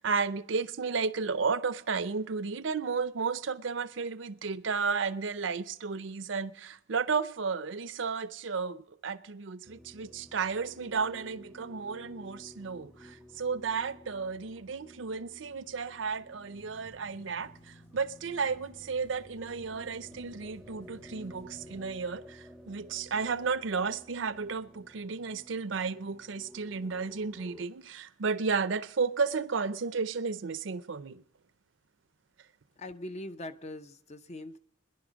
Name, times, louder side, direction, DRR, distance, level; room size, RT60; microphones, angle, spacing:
voice 1, 0.0-31.2, right 5 dB, 75° right, 0.6 m, -33 dB
sound 1, 9.6-27.7, equal, ahead, 0.7 m, -53 dB
sound 2, 16.5-21.8, equal, 80° left, 6.8 m, -56 dB
voice 2, 32.8-34.6, left 1 dB, 35° left, 0.6 m, -42 dB
21.0 x 11.0 x 5.1 m
head